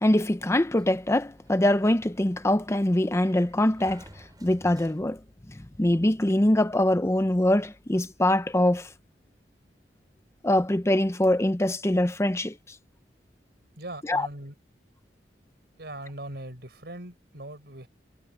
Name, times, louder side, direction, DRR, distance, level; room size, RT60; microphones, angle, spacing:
voice 1, 0.0-4.0 4.4-5.2 5.8-8.9 10.4-12.6 14.1-14.3, left 1 dB, 15° left, 0.7 m, -23 dB
Sliding door, 0.7-5.4, right 1 dB, 25° right, 5.3 m, -54 dB
voice 2, 13.8-14.5 15.8-17.9, right 1 dB, 65° right, 5.6 m, -40 dB
head